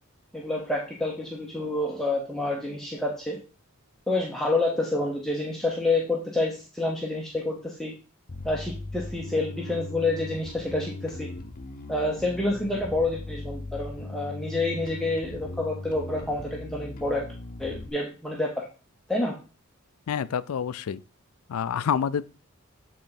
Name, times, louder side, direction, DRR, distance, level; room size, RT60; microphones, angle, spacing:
voice 1, 0.3-3.4 4.1-7.9 8.4-11.3 11.9-17.3 17.6-18.7 19.1-19.4, left 2 dB, ahead, 0.9 m, -28 dB
Bass guitar, 8.3-17.9, left 2 dB, 40° left, 0.7 m, -38 dB
voice 2, 20.1-21.0 21.5-22.3, left 7 dB, 75° left, 0.4 m, -27 dB
8.3 x 3.9 x 4.0 m
head